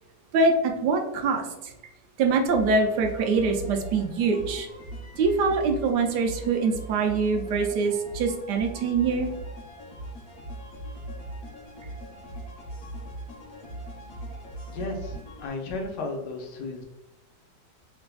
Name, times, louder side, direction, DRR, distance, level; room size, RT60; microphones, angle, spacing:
voice 1, 0.3-1.7 2.2-4.7 5.2-9.3, right 4 dB, 85° right, 3 dB, 1.2 m, -24 dB
sound 1, 2.5-15.5, right 1 dB, 60° left, 1.2 m, -40 dB
voice 2, 14.7-16.8, left 2 dB, 80° left, 2 dB, 1.3 m, -34 dB
3.4 x 3.2 x 2.2 m, 0.95 s
omnidirectional pair, 1.8 m